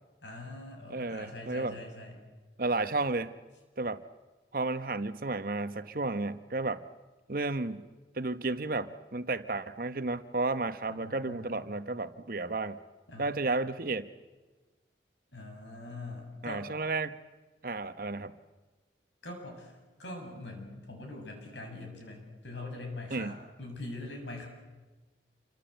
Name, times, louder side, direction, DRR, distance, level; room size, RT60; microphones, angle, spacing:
voice 1, 0.2-2.2 10.9-11.6 13.1-13.4 15.3-16.7 19.2-24.5, left 2 dB, 85° left, 3 dB, 7.3 m, -43 dB
voice 2, 0.9-1.8 2.6-3.3 3.8-4.0 4.5-6.8 7.3-7.9 8.1-12.8 13.2-14.1 16.4-17.1 17.6-18.3 23.1-23.4, right 3 dB, 50° right, 11 dB, 1.0 m, -32 dB
27.5 x 24.5 x 8.0 m, 1.3 s
head